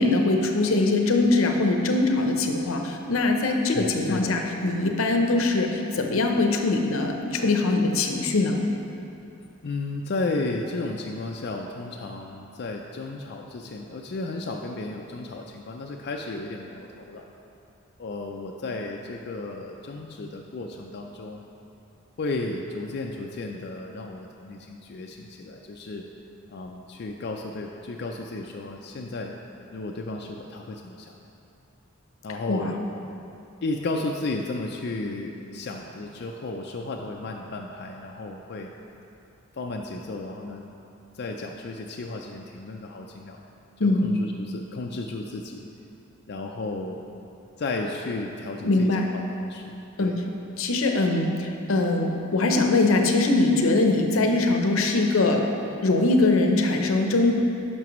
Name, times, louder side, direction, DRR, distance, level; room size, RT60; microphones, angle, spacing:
voice 1, 0.0-8.6 32.5-32.7 43.8-44.1 48.6-49.1 50.0-50.2 50.6-55.5 55.8-57.3, left 2 dB, 80° left, 3 dB, 0.7 m, -22 dB
voice 2, 3.7-4.4 9.6-17.2 18.0-21.4 22.2-26.1 26.5-29.4 29.7-31.1 32.2-32.8 33.6-38.7 39.5-40.6 41.1-43.4 43.8-45.6 46.3-47.0 47.6-49.7 50.0-50.2, left 2 dB, 50° left, 1 dB, 0.4 m, -33 dB
10.5 x 5.9 x 3.0 m, 2.7 s
head